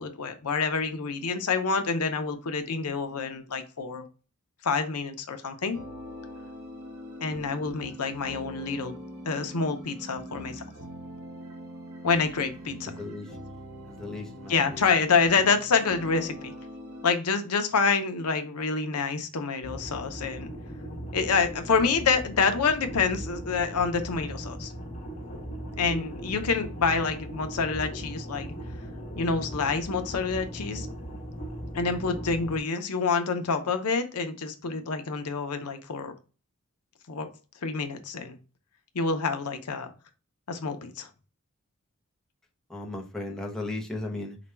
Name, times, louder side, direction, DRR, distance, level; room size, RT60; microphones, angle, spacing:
voice 1, 0.0-4.1 4.6-5.8 7.2-8.9 9.3-10.6 12.0-12.9 14.5-16.5 17.0-20.5 21.1-24.7 25.8-28.5 29.2-30.9 31.7-36.1 37.1-37.3 37.6-38.4 38.9-39.9 40.5-41.1, left 5 dB, 80° left, 7 dB, 0.7 m, -27 dB
sound 1, 5.7-17.1, equal, 80° right, 1.4 m, -42 dB
voice 2, 12.8-13.4 13.8-14.9 42.7-44.4, left 2 dB, ahead, 0 dB, 0.7 m, -36 dB
sound 2, 19.6-32.6, right 1 dB, 35° left, 1.1 m, -38 dB
4.8 x 2.3 x 4.3 m, 0.35 s
head